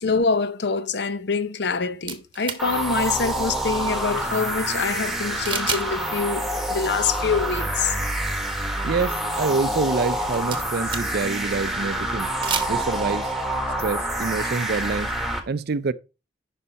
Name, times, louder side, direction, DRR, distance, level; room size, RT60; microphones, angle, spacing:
voice 1, 0.0-8.0 14.4-14.5, left 5 dB, 60° left, 0.7 m, -25 dB
sound 1, 2.1-2.6 5.5-5.9 6.2-6.3 10.1-11.3 12.3-12.7, right 6 dB, 25° right, 1.0 m, -30 dB
sound 2, 2.6-15.4, right 1 dB, ahead, 1.4 m, -27 dB
voice 2, 8.8-12.3 12.7-13.3 13.8-15.1 15.5-15.9, right 4 dB, 55° right, 0.5 m, -26 dB
10.0 x 5.4 x 4.1 m
head